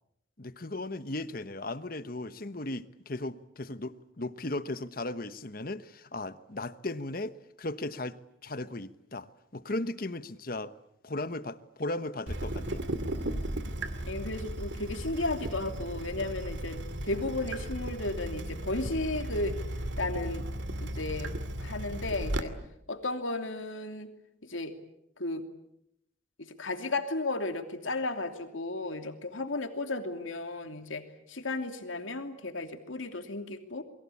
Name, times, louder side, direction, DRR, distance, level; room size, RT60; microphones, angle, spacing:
voice 1, 0.4-10.7 11.0-12.9, left 2 dB, 45° left, 1.1 m, -37 dB
Water tap faucet / Drip, 12.3-22.4, right 1 dB, 65° right, 2.3 m, -35 dB
voice 2, 14.1-19.6 20.0-20.5 20.8-21.3 21.6-22.5 22.9-24.1 24.4-24.7 25.2-25.4 26.4-33.8, left 2 dB, 85° left, 2.9 m, -34 dB
29.0 x 22.5 x 8.5 m
head